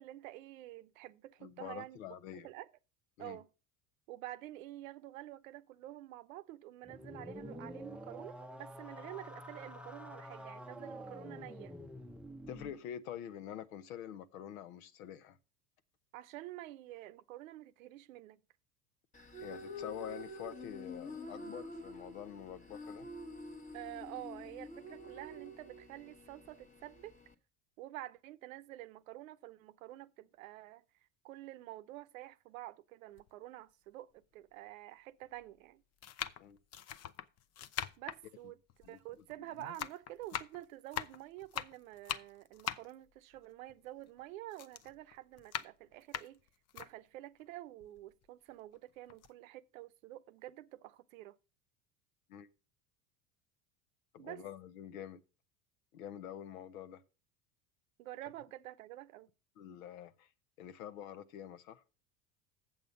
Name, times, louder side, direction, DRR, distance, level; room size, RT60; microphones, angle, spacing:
voice 1, 0.0-2.7 3.2-3.5 4.1-11.7 16.1-18.4 23.7-27.2 27.8-30.8 31.2-35.8 38.0-46.4 46.7-51.4 54.2-54.5 58.0-59.3, right 15 dB, 75° right, 0.8 m, -49 dB
voice 2, 1.4-2.5 3.2-3.4 12.5-15.4 19.4-23.1 36.4-36.6 38.8-39.0 39.6-39.7 52.3-52.5 54.1-55.2 55.9-57.0 59.6-60.3 60.6-61.8, left 10 dB, 75° left, 0.9 m, -46 dB
sound 1, 6.8-12.8, equal, 5° right, 0.6 m, -48 dB
sound 2, 19.1-27.3, left 1 dB, 20° left, 1.1 m, -48 dB
sound 3, 33.2-33.3 34.2-34.3 35.2-35.5 36.0-39.4 39.6-44.2 44.5-46.9 47.4-47.5 47.8-48.8 49.1-49.3, left 10 dB, 40° left, 0.6 m, -42 dB
7.9 x 7.5 x 5.2 m
hypercardioid pair, 85°, 40 cm